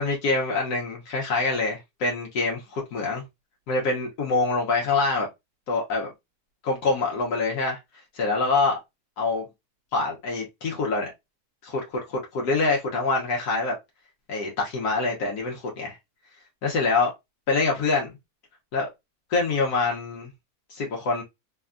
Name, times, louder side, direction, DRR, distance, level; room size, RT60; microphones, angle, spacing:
voice 1, 0.0-3.2 3.7-5.3 5.7-6.1 6.6-7.8 8.1-8.8 9.2-9.4 9.9-11.1 11.6-13.7 14.3-16.0 16.6-17.1 17.5-18.1 18.7-18.9 19.3-20.3 20.7-21.2, left 3 dB, 80° left, 1.4 m, -25 dB
3.5 x 2.2 x 2.4 m
omnidirectional pair, 1.7 m